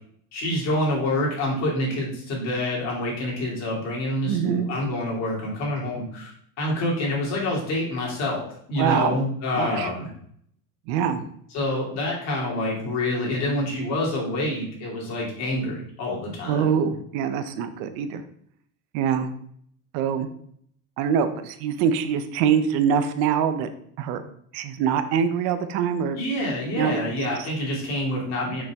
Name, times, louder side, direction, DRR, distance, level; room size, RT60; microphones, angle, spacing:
voice 1, 0.3-10.1 11.5-16.6 26.2-28.6, left 1 dB, 40° left, -4 dB, 2.7 m, -27 dB
voice 2, 4.3-4.7 8.8-9.2 9.6-9.9 10.9-11.2 16.5-18.2 18.9-19.3 19.9-20.3 21.0-23.7 24.0-24.2 24.5-26.2 26.8-27.0, right 7 dB, 75° right, 10 dB, 0.8 m, -24 dB
6.2 x 5.7 x 3.6 m, 0.65 s
cardioid pair, 175°, 39 cm